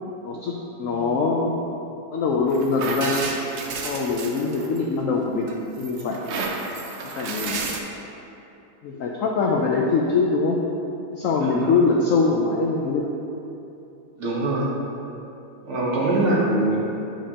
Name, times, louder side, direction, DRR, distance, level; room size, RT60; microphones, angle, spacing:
voice 1, 0.2-1.6 2.1-3.3 3.8-5.5 5.8-6.2 7.0-7.6 8.8-10.6 11.1-13.1, left 4 dB, 80° left, -1 dB, 0.7 m, -23 dB
sound 1, 2.5-5.0 5.5-7.8, right 3 dB, 85° right, 0.6 m, -31 dB
voice 2, 11.4-11.7 14.2-14.7 15.6-16.8, right 2 dB, 45° right, -5 dB, 1.3 m, -23 dB
8.7 x 5.1 x 2.8 m, 2.8 s
omnidirectional pair, 1.9 m